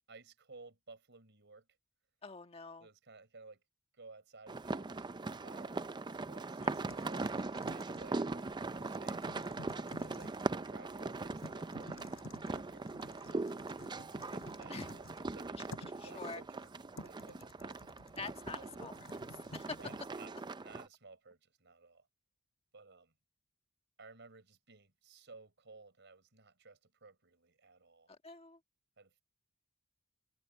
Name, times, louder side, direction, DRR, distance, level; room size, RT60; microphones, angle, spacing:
voice 1, 0.1-1.7 2.8-3.6 3.9-5.9 6.1-9.2 9.9-10.4 10.6-13.8 14.1-15.7 16.0-16.7 17.0-17.9 18.6-18.9 19.8-22.1 22.7-23.1 24.0-28.1 29.0-29.2, right 4 dB, 60° right, 4.9 m, -57 dB
voice 2, 2.2-2.9 6.6-6.7 14.7-14.9 16.0-16.4 18.2-18.9 19.5-19.8 28.2-28.6, left 4 dB, 30° left, 1.6 m, -45 dB
sound 1, 4.5-20.9, right 3 dB, 20° right, 0.5 m, -40 dB
Typing, 6.6-20.0, left 1 dB, 85° left, 6.2 m, -54 dB
head